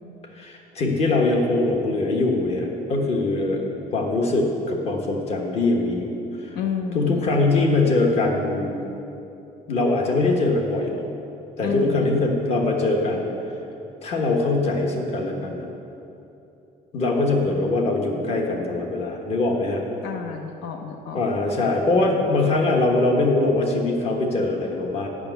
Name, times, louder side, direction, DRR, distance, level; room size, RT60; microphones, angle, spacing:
voice 1, 0.4-3.6 3.9-6.6 6.9-8.8 9.7-11.0 11.6-13.3 14.0-15.7 16.9-19.8 21.1-25.1, left 2 dB, 40° left, 1 dB, 1.2 m, -22 dB
voice 2, 6.5-7.4 11.6-12.2 20.0-21.2, left 6 dB, 85° left, 5 dB, 0.7 m, -30 dB
8.6 x 6.0 x 8.0 m, 2.9 s
cardioid pair, 170°, 16 cm